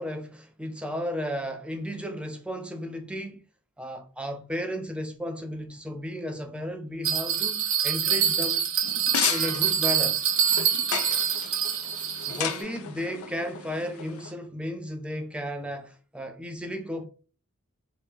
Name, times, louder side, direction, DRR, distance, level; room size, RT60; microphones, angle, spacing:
voice 1, 0.0-3.5 3.8-8.7 9.3-10.2 12.3-17.1, equal, 5° right, 0.4 m, -34 dB
Bell, 7.0-12.6, right 8 dB, 65° right, 0.6 m, -25 dB
sound 1, 8.8-14.3, left 8 dB, 80° left, 0.4 m, -34 dB
2.9 x 2.7 x 3.4 m
head